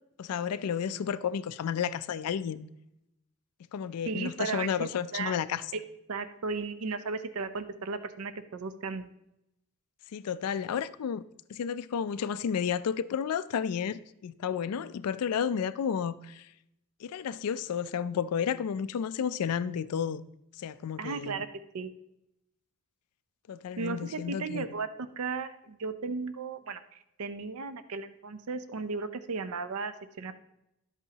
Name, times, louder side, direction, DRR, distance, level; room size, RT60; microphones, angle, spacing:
voice 1, 0.2-2.7 3.7-5.6 10.1-11.2 11.5-16.5 17.0-20.3 20.6-21.4 23.5-24.7, left 7 dB, 90° left, 0.4 m, -32 dB
voice 2, 4.1-5.4 6.1-9.1 21.0-21.5 21.7-21.9 23.8-24.9 25.2-30.3, right 4 dB, 70° right, 0.5 m, -35 dB
11.0 x 8.1 x 2.8 m
head